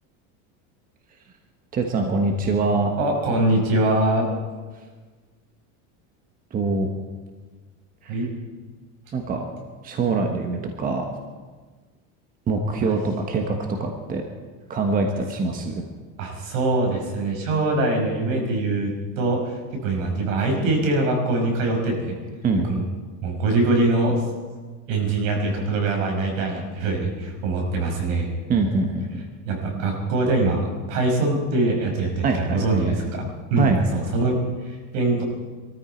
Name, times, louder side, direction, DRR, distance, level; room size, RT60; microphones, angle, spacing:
voice 1, 1.7-2.9 6.5-6.9 8.0-8.2 9.1-9.4 9.8-11.1 12.5-14.3 14.7-15.8 22.4-22.7 28.5-29.2 32.2-32.9 33.6-33.8, right 3 dB, 20° right, 3 dB, 1.3 m, -24 dB
voice 2, 3.0-4.3 8.1-8.3 12.8-12.9 16.2-22.2 22.6-22.8 23.2-24.2 24.9-28.3 29.4-35.2, right 2 dB, 75° right, 1 dB, 5.6 m, -23 dB
23.5 x 13.5 x 4.5 m, 1.4 s
supercardioid pair, 155°, 39 cm